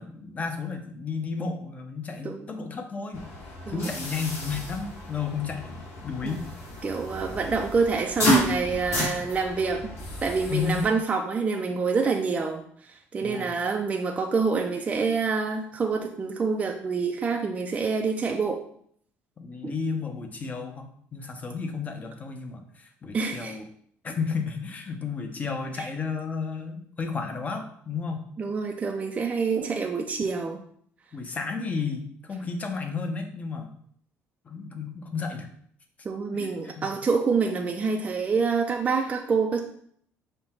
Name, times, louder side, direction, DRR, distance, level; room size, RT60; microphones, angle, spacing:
voice 1, 0.0-3.2 3.7-6.5 10.5-10.9 13.2-13.5 19.4-23.6 24.0-28.2 31.1-33.7 34.4-35.5 36.3-36.9, left 5 dB, 30° left, 5 dB, 0.7 m, -32 dB
sound 1, 3.1-10.8, equal, 55° left, 1.8 m, -31 dB
voice 2, 6.8-10.0 10.2-18.6 19.6-19.7 23.1-23.5 25.8-25.9 28.4-30.6 36.0-39.6, right 4 dB, 25° right, 2 dB, 0.4 m, -27 dB
5.4 x 2.2 x 4.3 m, 0.63 s
cardioid pair, 125°, 5 cm